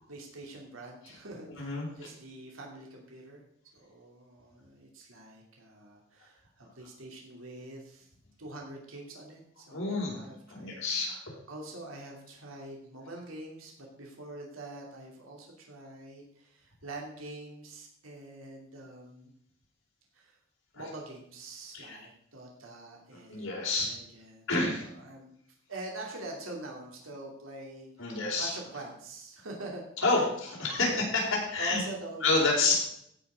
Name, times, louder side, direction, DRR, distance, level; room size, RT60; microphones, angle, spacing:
voice 1, 0.1-3.4 3.7-8.1 8.4-10.8 11.5-19.3 20.1-20.4 20.7-25.3 25.7-29.8 30.1-30.2 30.8-31.0 31.6-32.4, right 2 dB, 90° right, -1 dB, 2.6 m, -45 dB
voice 2, 1.6-1.9 9.7-11.2 21.7-22.0 23.1-23.9 24.5-24.9 28.0-28.5 30.0-30.2 30.6-30.9 31.5-31.8 32.2-32.7, left 3 dB, 85° left, -3 dB, 4.8 m, -28 dB
15.5 x 5.8 x 5.0 m, 0.70 s
head